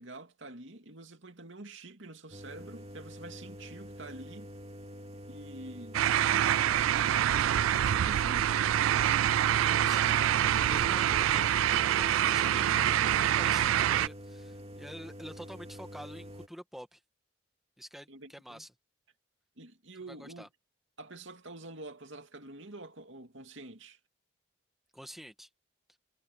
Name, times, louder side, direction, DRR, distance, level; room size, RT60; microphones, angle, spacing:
voice 1, 0.0-4.5 5.3-6.0 7.2-8.5 10.6-11.2 12.1-12.6 18.1-18.6 19.6-20.4 21.0-24.0, right 2 dB, 70° right, 2.6 m, -47 dB
sound 1, 2.3-16.5, equal, 30° right, 2.4 m, -46 dB
sound 2, 5.9-14.1, right 11 dB, 90° right, 0.3 m, -26 dB
voice 2, 9.5-10.2 10.6-17.0 17.8-18.7 20.1-20.5 24.9-25.5, equal, ahead, 1.6 m, -47 dB
head